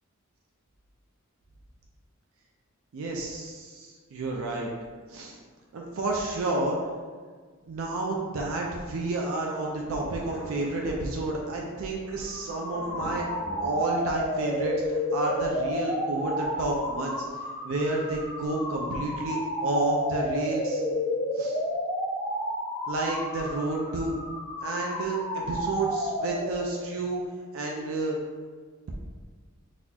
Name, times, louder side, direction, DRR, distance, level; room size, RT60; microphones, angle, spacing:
voice 1, 2.9-4.7 5.1-5.4 5.7-6.8 7.7-13.3 13.6-17.2 17.6-20.8 21.3-21.6 22.9-24.2 24.6-27.2 27.5-28.2, right 2 dB, 70° right, -1 dB, 0.4 m, -30 dB
Thunder, 9.8-14.6, equal, 70° left, 1.4 m, -45 dB
sound 1, 12.2-26.9, left 1 dB, 5° left, 1.1 m, -31 dB
4.0 x 2.3 x 2.7 m, 1.5 s
head